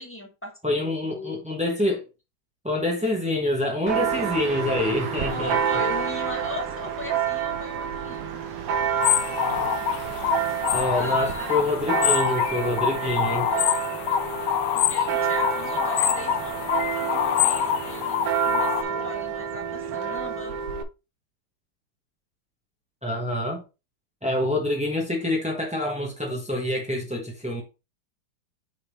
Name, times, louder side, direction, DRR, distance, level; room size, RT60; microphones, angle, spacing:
voice 1, 0.0-1.4 5.2-8.5 9.1-9.2 10.4-10.5 10.9-11.6 13.5-14.1 14.7-20.5, left 1 dB, 5° left, 1.3 m, -38 dB
voice 2, 0.6-2.0 2.6-5.6 10.7-13.5 23.0-23.6 24.2-27.6, left 1 dB, 10° right, 0.3 m, -26 dB
Church bell, 3.9-20.8, right 7 dB, 80° right, 1.6 m, -29 dB
sound 1, 9.0-18.8, left 10 dB, 80° left, 1.4 m, -25 dB
6.8 x 3.5 x 4.1 m
omnidirectional pair, 2.3 m